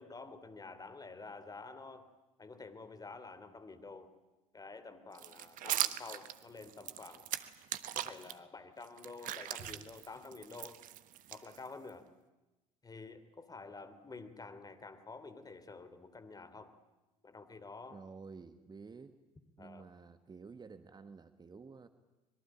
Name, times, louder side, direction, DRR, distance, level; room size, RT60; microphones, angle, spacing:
voice 1, 0.0-2.1 2.4-4.1 4.5-7.3 7.9-10.8 11.3-12.1 12.8-16.7 17.2-18.0 19.6-19.9, left 3 dB, 20° left, 11 dB, 3.0 m, -49 dB
sound 1, 5.1-8.3 8.8-11.9, right 12 dB, 50° right, 1.3 m, -40 dB
voice 2, 17.9-19.2 19.6-21.9, right 5 dB, 25° right, 10 dB, 1.5 m, -51 dB
25.0 x 22.0 x 8.8 m, 1.1 s
figure-of-eight pair, 60°, 18 cm